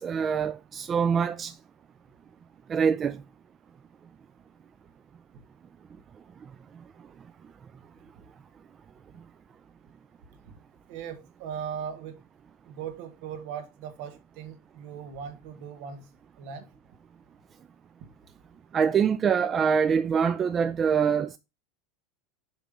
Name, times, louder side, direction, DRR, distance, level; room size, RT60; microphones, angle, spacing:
voice 1, 0.0-1.5 2.7-3.2 18.7-21.4, right 7 dB, 25° right, 0.3 m, -24 dB
voice 2, 10.9-12.2 12.6-16.0 16.4-16.7 18.0-18.1, right 7 dB, 60° right, 1.2 m, -39 dB
6.9 x 3.2 x 5.1 m
supercardioid pair, 130°, 0 cm